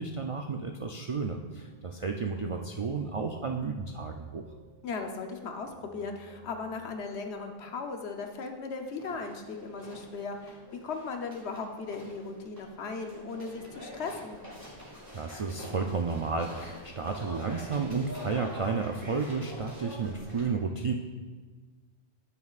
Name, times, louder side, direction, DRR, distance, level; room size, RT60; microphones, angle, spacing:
voice 1, 0.0-4.4 15.1-20.9, right 4 dB, 60° right, 3 dB, 0.3 m, -32 dB
sound 1, 1.6-1.8 2.2-3.8 4.1-4.8 5.2-7.0 7.4-8.1 8.5-20.4, equal, 20° right, 2.2 m, -47 dB
voice 2, 4.8-10.6 10.8-14.4, left 4 dB, 75° left, 4 dB, 1.1 m, -37 dB
9.5 x 9.0 x 2.4 m, 1.4 s
omnidirectional pair, 1.1 m